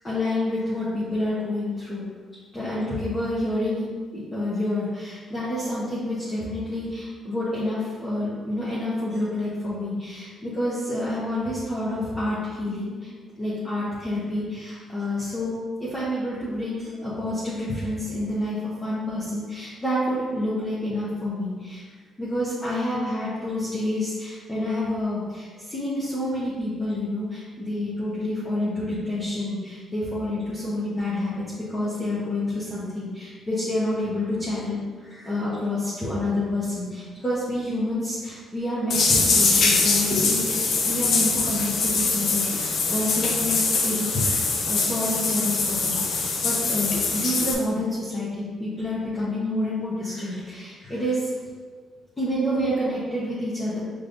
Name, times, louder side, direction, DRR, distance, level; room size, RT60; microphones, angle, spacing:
voice 1, 0.0-2.1 2.5-3.9 4.1-13.1 13.4-15.5 15.8-21.8 22.2-51.3 52.2-53.8, left 1 dB, 25° left, -10 dB, 1.1 m, -28 dB
sound 1, 38.9-47.5, left 4 dB, 65° left, 0.6 m, -23 dB
5.1 x 3.2 x 2.6 m, 1.5 s
cardioid pair, 90°, 0 cm